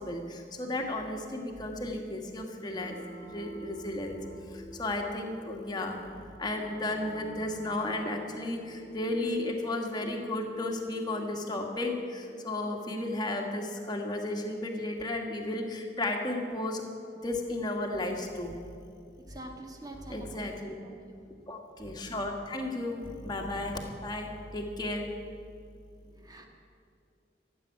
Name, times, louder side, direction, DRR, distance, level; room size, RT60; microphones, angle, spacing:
voice 1, 0.0-3.0 3.3-4.2 4.5-16.8 17.2-18.5 19.3-19.4 20.1-20.8 21.5-25.0, left 2 dB, 25° left, 1 dB, 1.6 m, -34 dB
sound 1, 2.6-13.1, right 1 dB, 75° right, 3.6 m, -49 dB
voice 2, 19.2-20.4 20.8-21.5 26.0-26.5, right 1 dB, 20° right, 2 dB, 1.5 m, -46 dB
15.0 x 7.7 x 9.5 m, 2.4 s
head